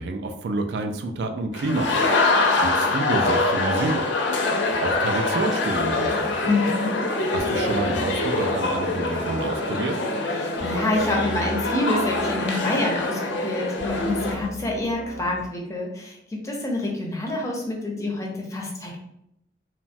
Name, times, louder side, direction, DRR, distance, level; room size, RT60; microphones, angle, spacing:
voice 1, 0.0-2.0 2.6-4.0 4.8-6.5 7.3-10.0, right 2 dB, 65° right, 6 dB, 0.3 m, -28 dB
sound 1, 1.5-14.3, left 2 dB, 90° left, 0.5 m, -24 dB
sound 2, 5.7-15.4, left 1 dB, 85° right, 1.0 m, -38 dB
voice 2, 6.5-7.0 10.3-19.0, left 2 dB, 15° left, -1 dB, 0.5 m, -27 dB
3.0 x 2.1 x 2.6 m, 0.79 s
head